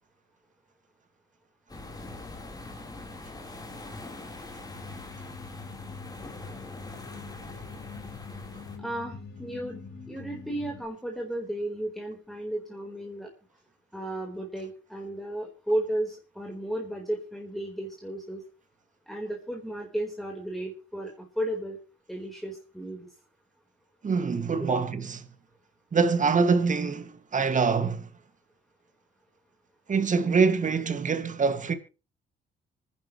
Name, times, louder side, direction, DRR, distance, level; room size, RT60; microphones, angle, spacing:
sound 1, 1.7-8.8, left 2 dB, 20° left, 4.0 m, -43 dB
sound 2, 4.6-10.9, left 4 dB, 55° left, 4.1 m, -44 dB
voice 1, 8.8-9.8 10.1-13.3 13.9-18.4 19.1-21.8 22.1-23.1 24.6-24.8, right 1 dB, ahead, 4.3 m, -34 dB
voice 2, 24.0-24.9 25.9-28.1 29.9-31.7, right 5 dB, 40° right, 2.1 m, -24 dB
25.5 x 10.5 x 3.2 m
cardioid pair, 90°, 20 cm